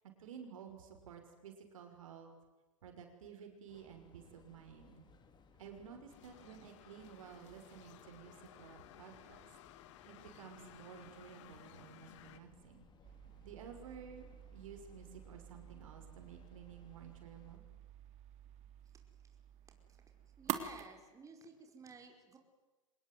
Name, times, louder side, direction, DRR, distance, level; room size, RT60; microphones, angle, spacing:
voice 1, 0.2-2.3 2.8-5.0 5.6-9.5 10.1-12.9 13.4-14.3 14.5-17.6, right 7 dB, 75° right, 5 dB, 6.2 m, -53 dB
Train, 3.7-17.6, left 5 dB, 25° left, 3.6 m, -66 dB
sound 1, 6.1-12.4, left 13 dB, 60° left, 2.4 m, -58 dB
sound 2, 13.0-20.8, right 10 dB, 40° right, 3.2 m, -48 dB
voice 2, 20.4-22.4, right 4 dB, 20° right, 4 dB, 5.0 m, -54 dB
26.0 x 20.5 x 9.6 m, 1.2 s
hypercardioid pair, 105°, 17 cm